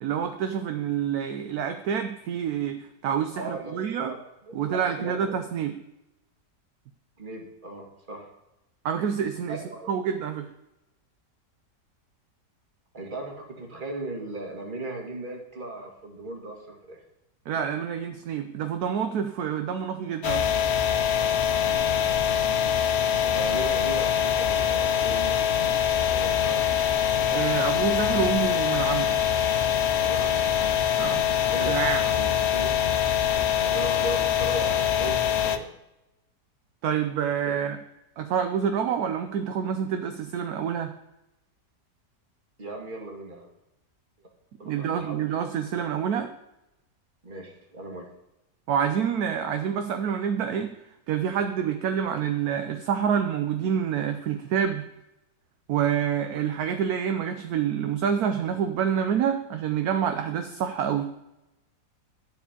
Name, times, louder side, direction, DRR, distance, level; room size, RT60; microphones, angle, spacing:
voice 1, 0.0-4.1 4.5-5.8 8.8-9.6 9.9-10.5 17.5-20.5 27.3-29.2 31.0-31.2 31.6-32.0 36.8-37.8 38.2-40.9 44.6-46.3 48.7-50.7 51.1-54.8 55.7-61.1, right 8 dB, 70° right, 7 dB, 1.1 m, -27 dB
voice 2, 3.3-5.4 7.2-8.3 9.5-9.9 12.9-17.0 23.2-25.7 25.9-26.6 30.0-30.5 31.5-31.7 32.0-32.8 33.6-35.7 37.5-37.6 42.6-43.5 44.2-44.3 44.6-45.2 47.2-48.1, right 2 dB, 30° right, 0 dB, 2.1 m, -37 dB
sound 1, 20.2-35.6, left 9 dB, 60° left, 0.7 m, -24 dB
11.5 x 4.8 x 8.4 m, 0.93 s
omnidirectional pair, 1.8 m